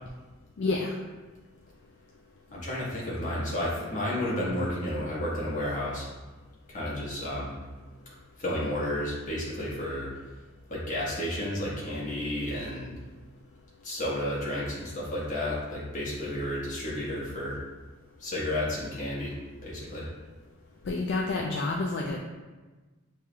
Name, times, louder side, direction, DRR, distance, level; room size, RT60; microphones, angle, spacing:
voice 1, 0.6-1.0 20.9-22.2, left 3 dB, 60° left, 0 dB, 0.4 m, -29 dB
voice 2, 2.5-6.1 6.7-7.5 8.4-10.1 10.7-12.9 13.8-17.6 18.2-19.4 19.6-20.1, left 1 dB, 40° left, -7 dB, 1.3 m, -32 dB
6.6 x 3.2 x 2.3 m, 1.3 s
head